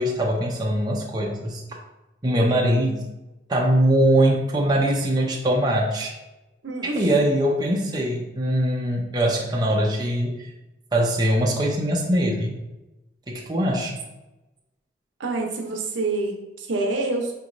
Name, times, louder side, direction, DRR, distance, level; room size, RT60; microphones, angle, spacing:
voice 1, 0.0-1.6 2.2-3.0 3.5-6.1 6.9-10.5 10.9-12.6 13.3-14.0, right 1 dB, 20° right, -2 dB, 0.5 m, -22 dB
voice 2, 6.6-7.0 15.2-17.3, right 2 dB, 75° right, 2 dB, 0.7 m, -27 dB
5.2 x 3.0 x 2.6 m, 1.0 s
head